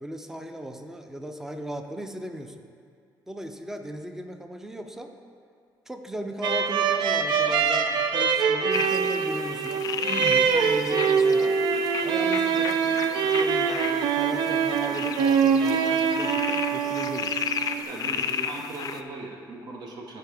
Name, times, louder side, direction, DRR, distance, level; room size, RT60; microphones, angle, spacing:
voice 1, 0.0-2.6 3.3-5.1 5.9-11.6 12.0-17.4, right 1 dB, 5° right, 6 dB, 0.5 m, -37 dB
sound 1, 6.4-17.8, right 6 dB, 80° right, 0.4 m, -24 dB
sound 2, 8.7-19.0, left 7 dB, 50° left, 0.4 m, -34 dB
voice 2, 17.8-20.2, right 2 dB, 60° right, 0 dB, 0.9 m, -38 dB
13.0 x 4.6 x 3.4 m, 2.2 s
cardioid pair, 140°, 8 cm